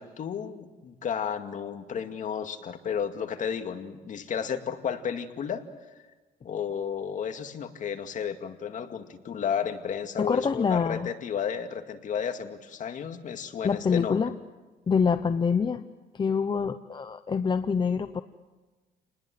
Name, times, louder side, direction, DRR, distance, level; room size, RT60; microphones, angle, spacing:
voice 1, 0.0-5.6 5.9-6.0 6.4-14.2, left 7 dB, 50° left, 6 dB, 2.2 m, -32 dB
voice 2, 10.2-11.1 13.6-14.3 14.9-15.8 16.1-18.2, left 6 dB, 30° left, 10 dB, 0.9 m, -25 dB
29.0 x 20.0 x 7.8 m, 1.2 s
cardioid pair, 110°, 17 cm